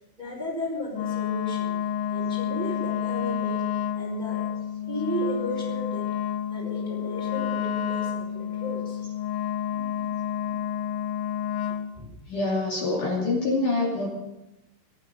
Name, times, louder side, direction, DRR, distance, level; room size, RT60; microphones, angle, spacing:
voice 1, 0.2-1.7 2.1-3.6 3.9-4.5 4.9-6.1 6.5-9.0 9.7-10.1 11.7-12.1, equal, 10° right, -1 dB, 4.1 m, -34 dB
Wind instrument woodwind instrument, 0.9-11.9, left 9 dB, 80° left, 3.1 m, -30 dB
voice 2, 12.3-14.1, left 3 dB, 45° left, -4 dB, 3.9 m, -25 dB
19.0 x 13.5 x 5.5 m, 0.94 s
omnidirectional pair, 5.7 m